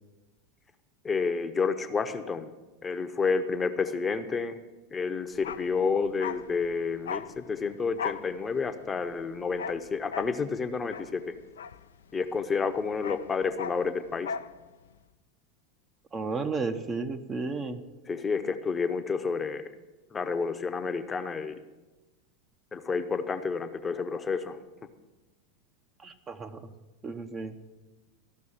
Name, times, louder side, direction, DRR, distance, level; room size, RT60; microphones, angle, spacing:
voice 1, 1.0-2.5 2.8-4.6 4.9-11.3 12.1-14.3 18.1-19.6 20.1-21.5 22.7-24.6, left 5 dB, 20° left, 8 dB, 0.8 m, -30 dB
Bark, 5.3-12.4 12.6-14.6 14.8-15.0, left 7 dB, 75° left, 0.4 m, -39 dB
voice 2, 16.1-17.8 26.0-26.6 27.0-27.5, right 4 dB, 25° right, 7 dB, 0.8 m, -33 dB
14.0 x 6.1 x 7.3 m, 1.2 s
hypercardioid pair, 85°, 0 cm